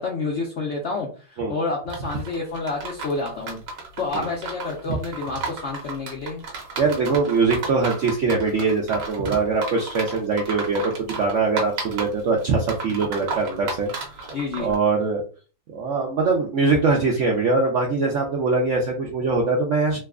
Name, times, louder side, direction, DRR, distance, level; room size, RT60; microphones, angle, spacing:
voice 1, 0.0-3.6 4.0-6.4 14.3-14.7, left 3 dB, 70° left, -1 dB, 0.6 m, -29 dB
sound 1, 1.9-14.7, right 3 dB, 55° right, 1.1 m, -34 dB
voice 2, 6.8-13.9 14.2-14.3 14.6-15.2 15.7-20.0, right 4 dB, 70° right, 0 dB, 0.7 m, -22 dB
3.0 x 2.2 x 3.5 m, 0.36 s
omnidirectional pair, 2.0 m